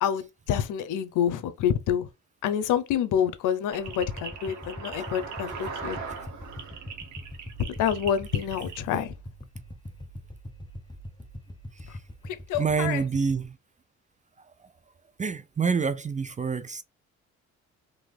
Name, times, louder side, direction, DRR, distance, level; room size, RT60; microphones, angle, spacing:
voice 1, 0.0-2.1 2.4-6.0 7.8-9.1 12.2-13.0, left 9 dB, 85° left, 0.7 m, -27 dB
sound 1, 3.7-8.8, right 5 dB, 70° right, 1.6 m, -39 dB
sound 2, 3.8-13.5, equal, 15° left, 0.9 m, -43 dB
voice 2, 12.6-13.5 15.2-16.8, right 5 dB, 25° right, 0.4 m, -27 dB
3.9 x 3.2 x 3.3 m
cardioid pair, 90°, 30 cm